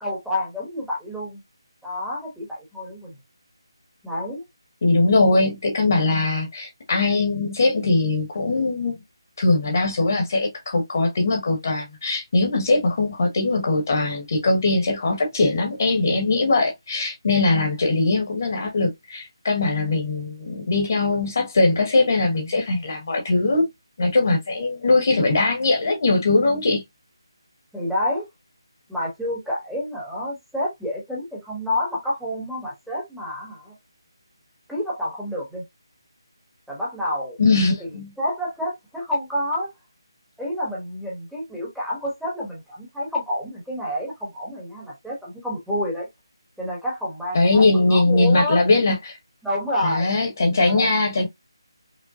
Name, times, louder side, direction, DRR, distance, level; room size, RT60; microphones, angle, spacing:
voice 1, 0.0-1.4 1.8-3.1 4.0-4.4 6.0-6.2 27.7-28.3 28.9-33.7 34.7-35.6 36.7-37.4 38.2-39.7 40.4-46.1 46.6-48.7 49.4-50.1 50.6-50.9, left 1 dB, ahead, 1.0 m, -29 dB
voice 2, 4.8-9.0 9.4-23.7 24.0-26.8 37.4-38.1 47.3-49.2 49.8-51.3, left 3 dB, 40° left, 1.2 m, -21 dB
5.3 x 2.1 x 2.7 m
figure-of-eight pair, 175°, 3 cm